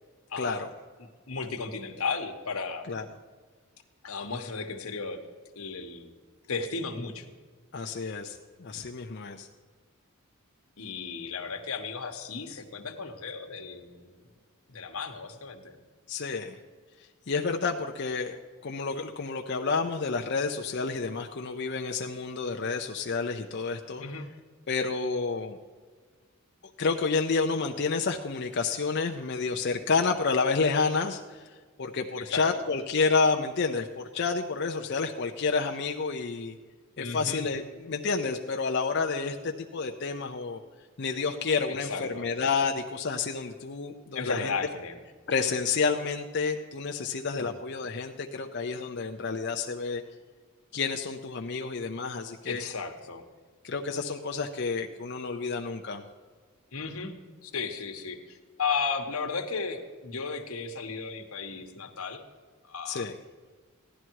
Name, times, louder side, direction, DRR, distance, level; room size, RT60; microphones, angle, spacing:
voice 1, 0.4-0.7 2.9-3.1 7.7-9.5 16.1-16.6 17.3-18.4 18.6-24.0 24.7-25.6 26.8-31.4 31.8-36.6 37.0-40.6 41.0-44.5 45.3-50.0 50.7-52.6 53.6-56.0 62.9-63.2, left 4 dB, 55° left, 3 dB, 0.7 m, -29 dB
voice 2, 1.0-2.9 4.0-5.2 5.6-6.1 6.5-7.3 10.8-14.2 14.7-15.8 24.0-24.3 32.2-32.6 37.0-37.4 41.8-42.3 44.1-45.0 47.3-47.6 52.5-53.2 56.7-57.1 57.4-62.2 62.7-63.1, left 4 dB, 85° left, 5 dB, 1.3 m, -35 dB
16.0 x 11.5 x 4.7 m, 1.5 s
head